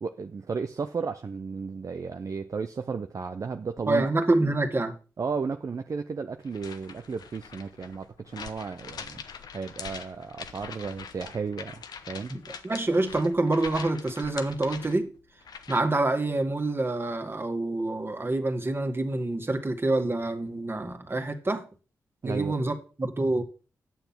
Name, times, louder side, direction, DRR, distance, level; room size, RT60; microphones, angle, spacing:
voice 1, 0.0-4.1 5.2-9.2 9.5-12.3 22.2-22.6, right 5 dB, 50° right, 0.7 m, -34 dB
voice 2, 3.9-5.0 12.3-15.1 15.7-21.6 22.2-23.4, right 2 dB, 35° right, 2.1 m, -27 dB
sound 1, 6.4-16.0, left 6 dB, 75° left, 0.9 m, -43 dB
9.1 x 6.9 x 6.0 m
supercardioid pair, 45°, 7 cm